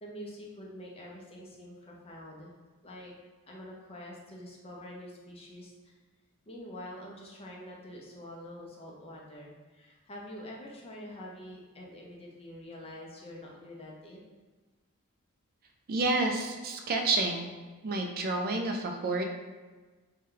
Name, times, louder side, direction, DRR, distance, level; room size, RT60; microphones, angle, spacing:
voice 1, 0.0-2.5 2.8-3.1 3.5-5.9 6.5-14.2, left 1 dB, 25° left, -2 dB, 0.5 m, -46 dB
voice 2, 15.9-17.5 17.8-19.2, right 2 dB, 45° right, 3 dB, 0.3 m, -29 dB
2.7 x 2.2 x 3.7 m, 1.3 s
head